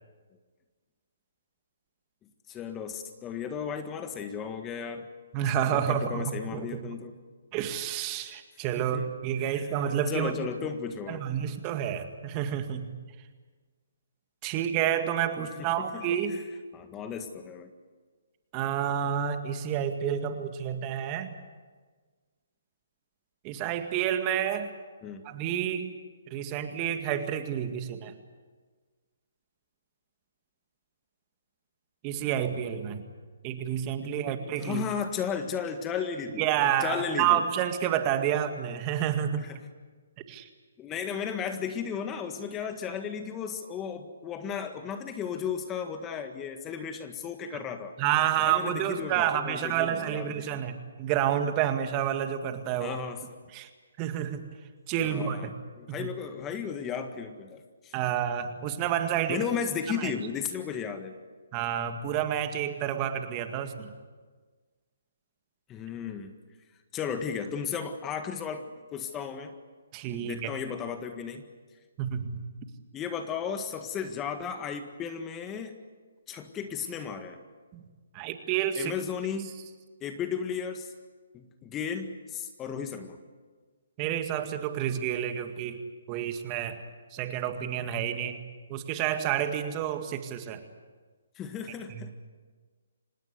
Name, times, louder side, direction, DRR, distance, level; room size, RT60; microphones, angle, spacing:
voice 1, 2.5-5.1 5.7-7.2 8.8-9.1 9.4-11.2 15.4-16.0 16.3-16.4 16.7-17.7 25.0-25.2 34.0-37.4 39.4-39.6 40.8-48.0 48.4-50.6 52.8-53.2 55.0-57.9 59.3-61.1 65.7-66.3 66.9-68.6 68.9-69.5 70.1-71.5 72.9-75.7 76.3-77.4 78.8-79.6 80.0-80.9 81.3-83.2 91.4-92.1, left 7 dB, 20° left, 7 dB, 1.7 m, -35 dB
voice 2, 5.3-6.8 7.5-10.3 11.1-12.9 14.4-16.4 18.5-21.3 23.4-24.7 25.2-25.9 26.3-28.1 32.0-33.0 33.4-34.8 36.4-39.5 40.3-40.5 48.0-53.0 53.5-53.7 54.0-54.5 54.9-55.5 56.0-56.1 57.9-59.4 60.0-60.1 61.5-63.9 69.9-70.5 72.0-72.4 78.1-78.9 84.0-85.8 86.1-86.8 87.1-88.4 88.7-90.6 92.0-92.1, right 10 dB, 25° right, 7 dB, 2.0 m, -29 dB
26.0 x 20.0 x 8.2 m, 1.4 s
hypercardioid pair, 145°, 0 cm